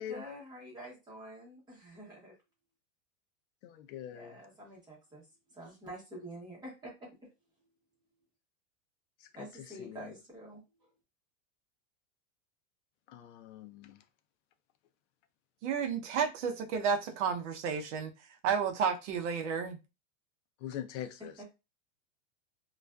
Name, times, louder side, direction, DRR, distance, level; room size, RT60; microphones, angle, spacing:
voice 1, 0.0-2.3 4.1-5.2 5.5-7.1 9.3-10.6 21.4-21.5, right 1 dB, 10° right, 0.9 m, -47 dB
voice 2, 3.6-4.4 9.2-9.5 9.8-10.1 13.1-14.0 20.6-21.3, left 10 dB, 60° left, 0.5 m, -43 dB
voice 3, 15.6-18.1 18.4-19.8, right 6 dB, 60° right, 0.6 m, -31 dB
2.4 x 2.3 x 2.2 m
supercardioid pair, 160°, 40 cm